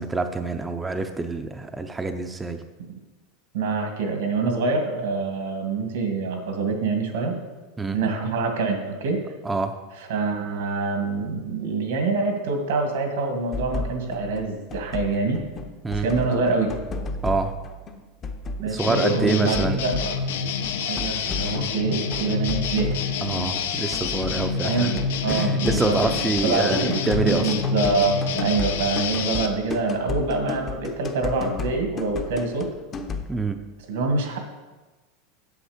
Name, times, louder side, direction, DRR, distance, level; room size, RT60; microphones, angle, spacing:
voice 1, 0.0-2.6 7.8-8.0 9.4-9.8 15.8-16.1 17.2-17.5 18.7-19.8 23.2-24.9 25.3-27.5 33.3-33.6, right 3 dB, 10° right, 6 dB, 0.5 m, -26 dB
voice 2, 3.5-7.4 7.9-9.2 10.1-15.4 15.9-16.7 18.6-20.1 20.6-23.0 24.6-26.0 26.4-32.7 33.9-34.4, right 3 dB, 85° right, 4 dB, 1.9 m, -25 dB
sound 1, 13.5-33.3, left 3 dB, 25° left, 0.7 m, -34 dB
sound 2, 18.8-29.5, left 6 dB, 90° left, 0.8 m, -27 dB
8.0 x 7.7 x 5.0 m, 1.2 s
supercardioid pair, 145°, 0 cm